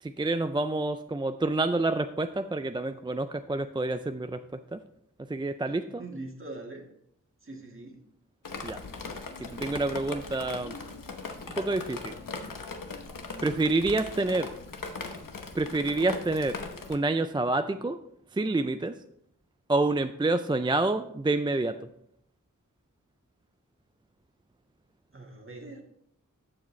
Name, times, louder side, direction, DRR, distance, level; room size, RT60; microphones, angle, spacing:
voice 1, 0.0-4.4 4.7-4.8 5.3-6.0 8.6-8.8 9.4-10.8 11.6-12.1 13.4-14.5 15.5-16.6 16.9-18.0 18.3-18.9 19.7-21.8, right 2 dB, 15° right, 9 dB, 0.3 m, -28 dB
voice 2, 5.9-6.8 7.4-8.0 14.0-14.3 25.1-25.8, right 2 dB, 40° right, 1 dB, 1.6 m, -43 dB
Drip, 8.5-17.0, left 4 dB, 90° left, 0.9 m, -39 dB
14.5 x 4.9 x 3.1 m, 0.74 s
wide cardioid pair, 70°, 32 cm